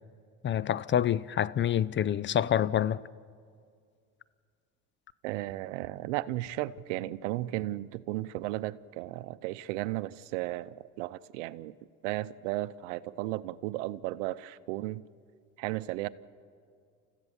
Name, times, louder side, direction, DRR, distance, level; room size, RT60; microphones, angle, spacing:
voice 1, 0.4-3.0, left 10 dB, 35° left, 0.5 m, -27 dB
voice 2, 5.2-11.7 12.0-15.0 15.6-16.1, right 16 dB, 85° right, 0.7 m, -34 dB
29.0 x 14.5 x 7.1 m
supercardioid pair, 90°, 35 cm